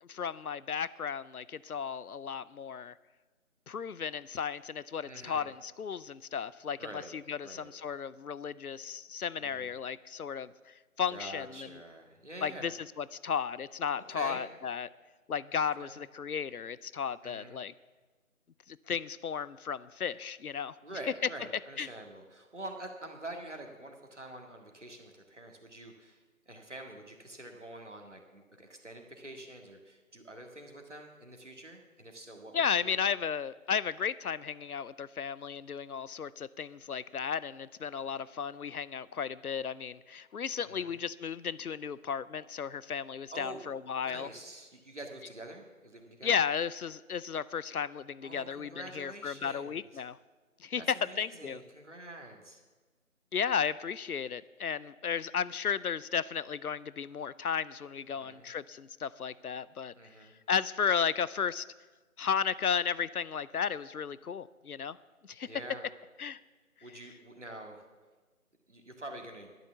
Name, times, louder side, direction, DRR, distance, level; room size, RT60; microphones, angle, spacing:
voice 1, 0.0-2.9 3.7-11.7 12.4-12.7 13.0-14.9 15.3-17.7 18.7-20.8 21.8-21.9 32.5-44.3 46.2-50.2 50.6-51.6 53.3-59.9 60.5-61.6 62.2-65.0 65.2-65.5 66.2-66.4, left 7 dB, 85° left, 18 dB, 0.6 m, -34 dB
voice 2, 5.0-5.5 6.8-7.1 7.4-7.7 9.4-9.7 11.1-12.7 14.0-14.5 15.8-16.0 17.2-17.6 20.8-33.0 40.6-41.0 43.3-43.7 44.0-46.4 48.2-50.0 50.8-52.6 58.1-58.5 60.0-60.4 65.5-65.9 66.8-67.9 68.7-69.5, right 1 dB, 55° right, 3 dB, 1.9 m, -46 dB
12.0 x 9.4 x 7.0 m, 1.3 s
figure-of-eight pair, 170°, 43 cm